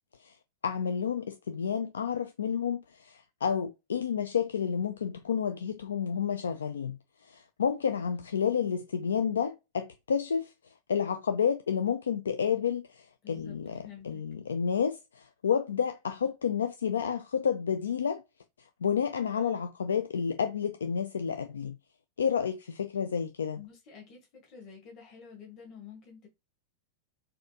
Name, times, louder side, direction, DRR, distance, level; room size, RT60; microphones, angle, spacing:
voice 1, 0.6-18.2 18.6-21.8 22.2-23.6, left 7 dB, 70° left, 0.3 m, -30 dB
voice 2, 13.2-13.6 13.8-14.2 23.5-26.3, left 7 dB, 35° left, 1.3 m, -49 dB
4.1 x 2.6 x 2.8 m
figure-of-eight pair, 90°, 0 cm